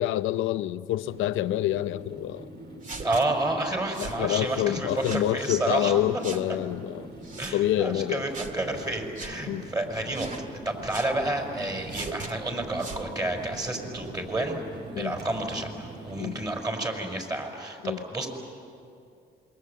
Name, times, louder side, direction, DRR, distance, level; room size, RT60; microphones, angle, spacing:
voice 1, 0.0-2.4 4.0-7.1 7.5-8.2 9.5-9.7 15.0-15.1 16.2-16.3 17.8-18.0, left 13 dB, 85° left, 0.6 m, -27 dB
sound 1, 1.0-16.5, right 1 dB, 60° right, 5.5 m, -43 dB
sound 2, 2.8-3.2 3.9-4.2 4.9-5.3 6.2-6.4 7.2-7.6 8.3-8.6 9.1-9.3 10.1-10.4 10.9-11.1 11.9-12.3 12.8-13.1, right 4 dB, 40° right, 2.1 m, -39 dB
voice 2, 3.0-6.0 7.4-14.6 15.0-18.3, right 2 dB, 20° right, 5.7 m, -30 dB
27.5 x 23.0 x 8.5 m
cardioid pair, 90°, 20 cm